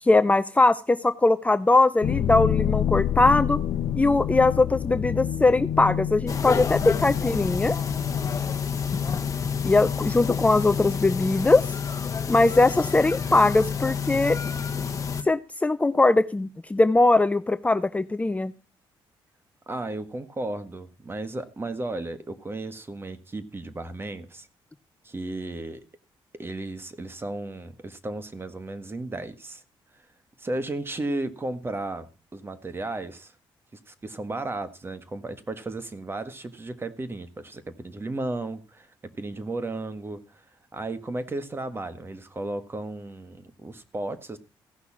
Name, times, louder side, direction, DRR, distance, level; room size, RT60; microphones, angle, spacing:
voice 1, 0.0-3.6 3.9-7.8 9.6-11.6 12.3-14.4 15.2-18.5, left 2 dB, 15° left, 0.6 m, -21 dB
sound 1, 2.0-10.8, left 10 dB, 80° left, 0.8 m, -29 dB
sound 2, 6.3-15.2, left 6 dB, 35° left, 1.1 m, -29 dB
voice 2, 19.7-24.5 25.0-25.8 26.3-29.6 30.4-33.3 33.9-38.9 39.2-40.4 40.7-44.4, right 2 dB, 25° right, 1.6 m, -34 dB
15.5 x 6.0 x 7.3 m
cardioid pair, 90°, 9 cm